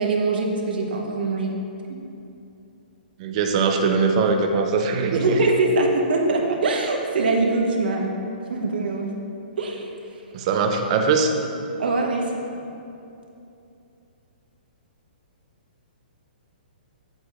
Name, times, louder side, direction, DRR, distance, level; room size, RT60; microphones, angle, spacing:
voice 1, 0.0-1.5 1.9-2.0 5.1-8.1 8.5-9.1 9.6-9.9 11.8-12.4, right 3 dB, 70° right, 1 dB, 1.2 m, -23 dB
voice 2, 3.2-5.4 10.3-11.3, right 4 dB, 40° right, 4 dB, 0.7 m, -21 dB
8.8 x 7.9 x 2.5 m, 2.7 s
hypercardioid pair, 145°, 5 cm